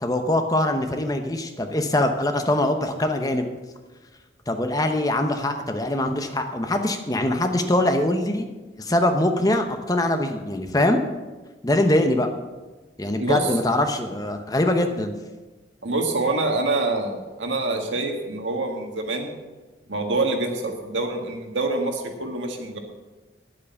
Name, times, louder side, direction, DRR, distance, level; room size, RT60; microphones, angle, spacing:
voice 1, 0.0-3.5 4.5-8.5 8.8-11.0 11.6-12.3 13.0-15.2, left 1 dB, 20° left, 6 dB, 0.8 m, -23 dB
voice 2, 13.2-13.5 15.8-19.3 19.9-22.8, right 2 dB, 85° right, 3 dB, 1.8 m, -26 dB
9.5 x 8.5 x 7.1 m, 1.2 s
head